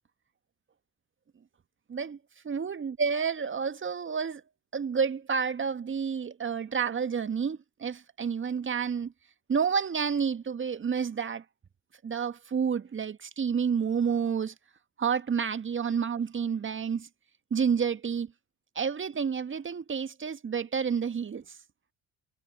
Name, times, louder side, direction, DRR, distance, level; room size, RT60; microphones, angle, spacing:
voice 1, 2.4-4.4 4.7-9.1 9.5-11.4 12.0-14.5 15.0-17.1 17.5-18.3 18.8-21.6, right 6 dB, 35° right, 1.9 m, -29 dB
figure-of-eight pair, 50°, 36 cm